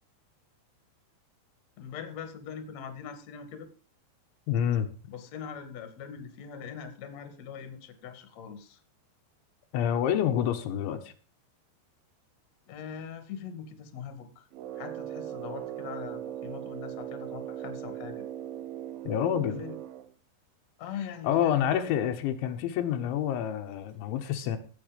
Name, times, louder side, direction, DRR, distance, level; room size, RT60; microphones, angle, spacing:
voice 1, 1.8-3.7 5.1-8.8 12.7-14.5 14.7-18.3 19.4-19.8 20.8-21.9, left 7 dB, 45° left, 9 dB, 2.6 m, -42 dB
voice 2, 4.5-4.9 9.7-11.1 19.1-19.6 21.2-24.6, left 10 dB, 80° left, 6 dB, 3.6 m, -28 dB
Brass instrument, 14.5-20.1, right 11 dB, 75° right, 2.3 m, -39 dB
16.0 x 8.6 x 5.2 m, 0.37 s
omnidirectional pair, 5.3 m